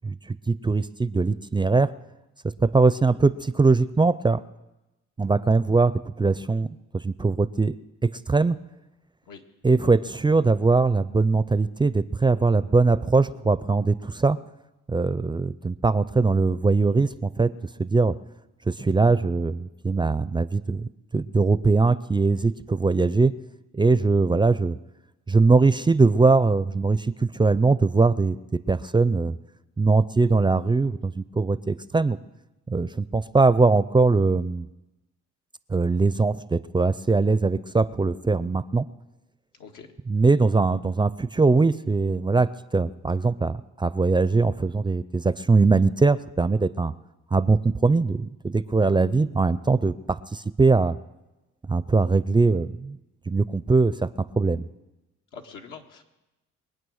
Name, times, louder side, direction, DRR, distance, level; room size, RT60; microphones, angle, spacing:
voice 1, 0.0-1.9 2.6-4.4 5.2-6.7 7.0-7.7 8.3-8.6 9.6-14.4 14.9-17.5 17.8-18.1 18.7-23.3 23.7-24.8 25.3-28.4 28.7-29.4 29.8-32.2 32.7-34.7 35.7-38.9 40.1-46.9 47.3-51.0 51.7-53.0 53.3-54.1 54.4-54.6, right 3 dB, 15° right, 15 dB, 0.4 m, -21 dB
voice 2, 39.6-39.9 55.3-56.0, left 5 dB, 90° left, 2 dB, 1.8 m, -43 dB
23.0 x 8.8 x 6.4 m, 1.0 s
cardioid pair, 90°, 30 cm